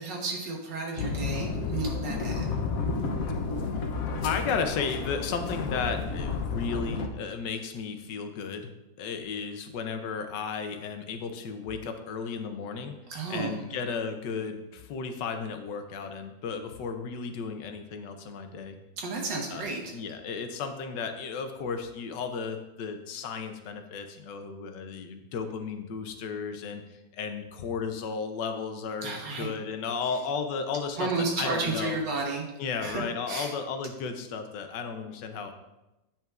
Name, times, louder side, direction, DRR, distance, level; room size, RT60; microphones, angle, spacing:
voice 1, 0.0-2.5 13.1-13.6 19.0-20.0 29.0-29.5 31.0-32.5 32.8-33.5, right 3 dB, 80° right, -1 dB, 1.9 m, -32 dB
sound 1, 1.0-7.1, left 4 dB, 65° left, 1.0 m, -31 dB
voice 2, 4.2-8.7 9.0-13.0 13.3-18.8 19.5-19.7 19.9-31.1 31.4-32.0 32.6-35.5, left 5 dB, 80° left, 7 dB, 1.3 m, -34 dB
8.8 x 5.6 x 2.4 m, 0.97 s
omnidirectional pair, 1.9 m